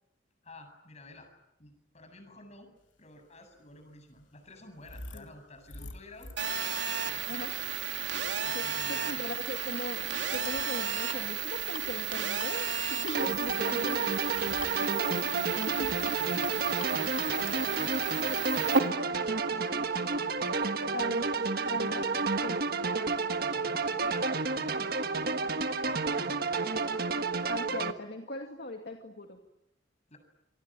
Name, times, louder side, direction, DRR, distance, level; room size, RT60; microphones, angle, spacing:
voice 1, 0.4-1.3 1.6-7.5 8.4-9.3 16.2-21.3 21.7-22.1 23.4-26.5 30.1-30.2, left 1 dB, 35° left, 6 dB, 7.9 m, -52 dB
sound 1, 3.2-18.9, left 3 dB, 90° left, 3.1 m, -50 dB
Telephone, 6.4-18.8, right 7 dB, 75° right, 3.5 m, -33 dB
voice 2, 7.3-7.6 8.5-14.2 14.8-15.3 15.7-16.0 20.9-21.2 21.6-22.1 22.4-22.6 27.5-29.4, left 2 dB, 60° left, 3 dB, 2.5 m, -40 dB
sound 2, 13.1-27.9, right 4 dB, 55° right, 1.5 m, -30 dB
27.5 x 24.0 x 9.1 m, 0.83 s
head